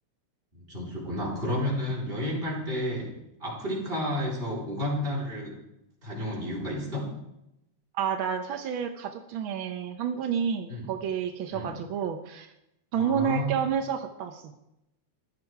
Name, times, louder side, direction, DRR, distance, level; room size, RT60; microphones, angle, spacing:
voice 1, 0.5-3.1 3.4-5.5 6.0-7.0 10.7-10.9 11.5-11.7 13.0-13.6, left 1 dB, 20° right, -4 dB, 4.1 m, -31 dB
voice 2, 7.9-12.5 12.9-14.5, right 8 dB, 80° right, 7 dB, 1.1 m, -30 dB
15.0 x 11.5 x 4.7 m, 0.86 s
omnidirectional pair, 3.3 m